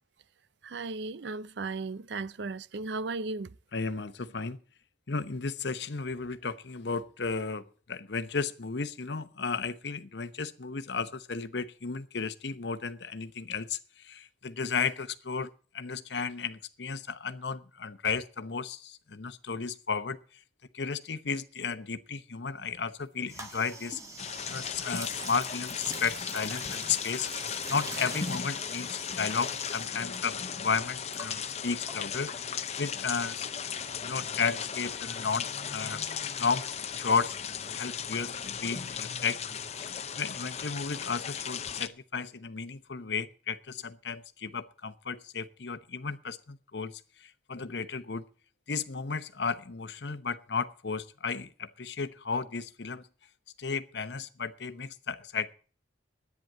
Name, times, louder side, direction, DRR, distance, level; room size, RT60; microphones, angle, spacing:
voice 1, 0.6-3.5, right 3 dB, 70° right, 0.5 m, -35 dB
voice 2, 3.7-4.6 5.1-20.2 20.7-24.0 24.5-27.3 27.7-33.7 34.0-36.0 36.4-37.4 37.7-48.2 48.7-53.1 53.6-55.5, left 5 dB, 65° left, 0.9 m, -34 dB
sound 1, 23.3-30.2 30.4-32.8, right 2 dB, 15° right, 1.6 m, -44 dB
sound 2, 24.2-41.9, left 7 dB, 35° left, 0.7 m, -36 dB
10.5 x 9.5 x 8.6 m
head